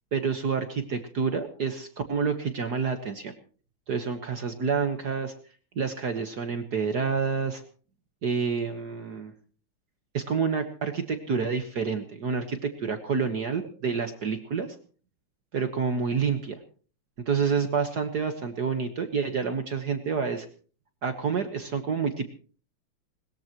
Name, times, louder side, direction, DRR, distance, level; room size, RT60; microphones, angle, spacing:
voice 1, 0.1-3.3 3.9-5.3 5.8-7.6 8.2-9.3 10.1-14.7 15.5-16.6 17.2-20.5 21.0-22.3, right 5 dB, 50° right, 7 dB, 1.8 m, -28 dB
21.0 x 21.0 x 3.1 m, 0.40 s
omnidirectional pair, 2.3 m